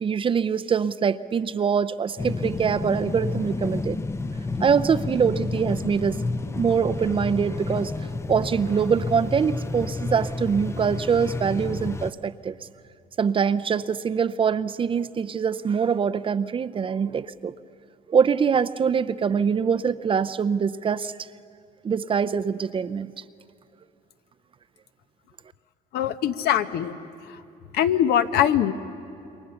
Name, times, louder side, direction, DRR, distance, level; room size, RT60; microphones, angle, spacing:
voice 1, 0.0-4.0 4.6-6.2 6.6-7.9 8.3-12.6 13.2-17.5 18.1-21.2 21.8-23.1, right 6 dB, 30° right, 13 dB, 0.5 m, -24 dB
sound 1, 2.2-12.1, left 3 dB, 15° left, 0.5 m, -30 dB
voice 2, 25.9-27.0 27.7-28.7, left 10 dB, 70° left, 11 dB, 0.9 m, -22 dB
27.5 x 23.0 x 7.0 m, 2.6 s
cardioid pair, 110°, 17 cm